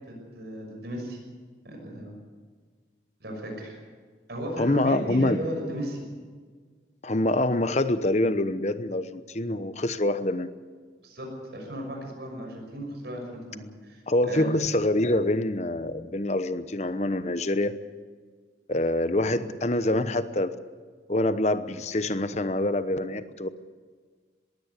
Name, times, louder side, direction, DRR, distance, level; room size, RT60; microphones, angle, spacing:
voice 1, 0.1-1.2 1.6-2.2 3.2-3.8 4.3-6.0 11.0-14.5, equal, 65° right, 1 dB, 6.2 m, -35 dB
voice 2, 4.6-5.4 7.0-10.5 14.1-17.7 18.7-20.5 21.1-23.5, left 1 dB, 35° left, 12 dB, 1.0 m, -25 dB
21.5 x 16.5 x 8.2 m, 1.5 s
head